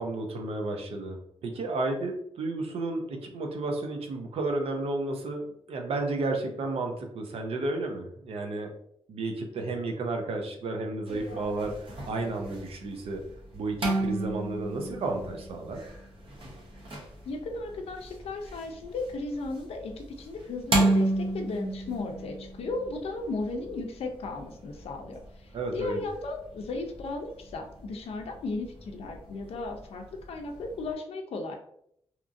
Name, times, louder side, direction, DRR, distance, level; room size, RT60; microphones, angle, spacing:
voice 1, 0.0-8.7 9.1-13.2 13.5-15.8 25.5-26.0, right 2 dB, 75° right, 3 dB, 0.5 m, -32 dB
sound 1, 11.1-30.9, right 2 dB, 60° right, 0.8 m, -34 dB
voice 2, 17.2-31.6, left 3 dB, 75° left, 3 dB, 0.4 m, -35 dB
2.8 x 2.5 x 2.4 m, 0.70 s
wide cardioid pair, 115°, 10 cm